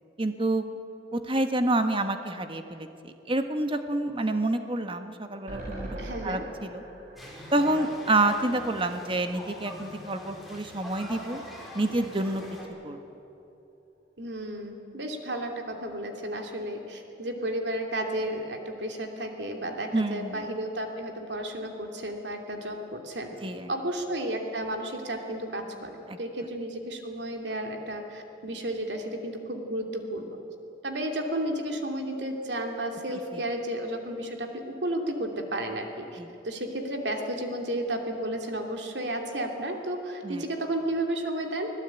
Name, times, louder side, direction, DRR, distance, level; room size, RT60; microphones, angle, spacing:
voice 1, 0.2-0.8 1.1-6.8 7.5-11.4 11.7-12.4 12.8-13.0 19.9-20.4 23.4-23.7 26.1-26.2 33.1-33.4 36.2-36.3 40.2-40.4, right 2 dB, 30° right, 7 dB, 1.4 m, -28 dB
sound 1, 5.5-8.7 9.1-9.2 9.4-9.5, right 1 dB, 45° right, 7.2 m, -41 dB
voice 2, 6.0-6.4 14.2-23.3 23.7-30.4 30.8-36.2 36.4-41.7, right 1 dB, 70° right, 3 dB, 2.8 m, -32 dB
sound 2, 7.2-12.6, equal, ahead, 4.9 m, -43 dB
25.0 x 17.0 x 9.1 m, 3.0 s
head